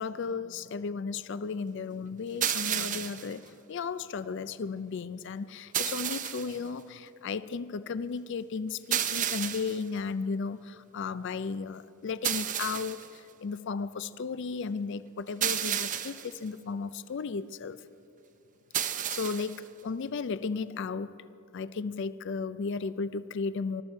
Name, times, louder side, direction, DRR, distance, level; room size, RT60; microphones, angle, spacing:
voice 1, 0.0-17.8 18.8-21.1 21.5-23.8, left 5 dB, 55° left, 15 dB, 0.4 m, -35 dB
sound 1, 2.4-3.3 5.7-6.6 8.9-9.8 12.2-13.1 15.4-16.3 18.7-19.6, right 10 dB, 35° right, 0.5 m, -31 dB
21.0 x 13.5 x 4.4 m, 2.6 s
head